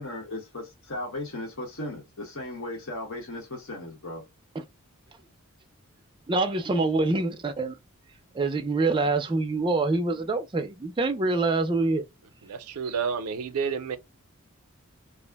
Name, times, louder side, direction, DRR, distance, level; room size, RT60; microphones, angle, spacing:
voice 1, 0.0-4.3, left 1 dB, 65° left, 0.9 m, -36 dB
voice 2, 6.3-7.8 8.3-12.1, right 3 dB, 20° right, 0.4 m, -25 dB
voice 3, 12.4-14.0, right 6 dB, 85° right, 0.5 m, -30 dB
2.4 x 2.0 x 3.3 m
head